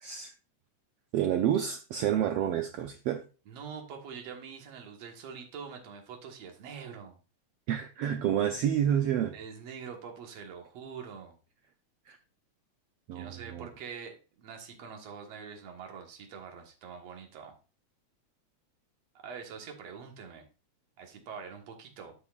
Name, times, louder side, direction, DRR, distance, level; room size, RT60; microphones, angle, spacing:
voice 1, 0.0-0.3 1.1-3.3 7.7-9.4 12.1-12.2 13.1-13.7, right 10 dB, 85° right, 6 dB, 1.3 m, -29 dB
voice 2, 3.5-7.2 9.3-11.4 13.1-17.5 19.2-20.4 21.0-22.2, right 6 dB, 60° right, 2 dB, 2.5 m, -44 dB
12.5 x 5.9 x 2.4 m, 0.33 s
omnidirectional pair, 3.4 m